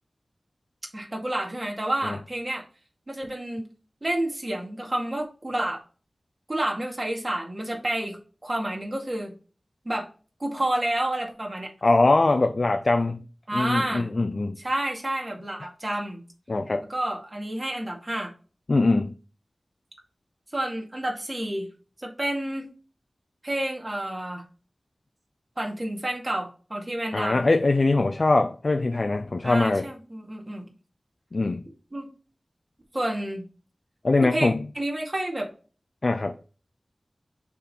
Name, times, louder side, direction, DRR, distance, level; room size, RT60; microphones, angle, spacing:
voice 1, 0.9-2.6 3.1-3.7 4.0-5.8 6.5-8.2 8.4-9.3 9.8-10.1 10.4-11.7 13.5-14.1 14.6-16.2 16.9-18.3 20.5-21.7 22.0-22.7 23.4-24.4 25.6-27.4 29.4-30.6 31.9-32.1 32.9-33.4 34.2-34.5 34.8-35.5, right 1 dB, 35° right, 2.2 m, -29 dB
voice 2, 11.8-13.2 13.5-14.6 16.5-16.8 18.7-19.1 27.1-29.9 31.3-31.6 34.0-34.7 36.0-36.4, left 2 dB, 55° left, 0.5 m, -22 dB
6.5 x 3.7 x 4.4 m
wide cardioid pair, 60°, 0 cm